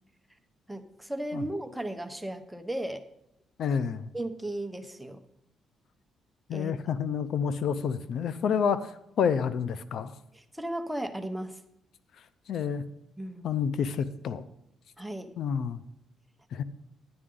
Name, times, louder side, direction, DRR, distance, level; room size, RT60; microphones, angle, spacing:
voice 1, 0.7-3.0 4.1-5.2 6.5-6.7 10.3-11.6 13.2-13.5 15.0-15.3, right 1 dB, 5° right, 0.9 m, -35 dB
voice 2, 3.6-4.1 6.5-10.1 12.5-12.8 13.4-14.4 15.4-15.8 16.5-16.6, left 7 dB, 70° left, 0.6 m, -29 dB
9.7 x 9.7 x 3.8 m
cardioid pair, 90°, 0 cm